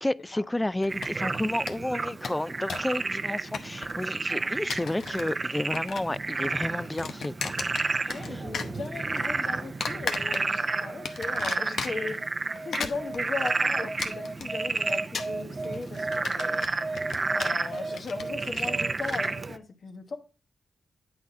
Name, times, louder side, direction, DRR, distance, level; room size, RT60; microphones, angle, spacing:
voice 1, 0.0-7.6 8.0-8.4, left 1 dB, 15° left, 0.3 m, -31 dB
sound 1, 0.8-1.4 1.7-1.8 2.0-3.0 3.2-4.1 4.5-5.3 5.6-6.2 6.4-8.3 8.5-9.3 9.8-10.7 11.0-12.2 12.6-19.3, left 5 dB, 80° left, 0.8 m, -36 dB
Frog, 0.9-19.6, right 3 dB, 45° right, 0.5 m, -31 dB
voice 2, 8.1-12.2 12.6-16.7 17.3-20.2, left 4 dB, 60° left, 1.2 m, -37 dB
8.6 x 4.1 x 4.8 m
cardioid pair, 60°, 0 cm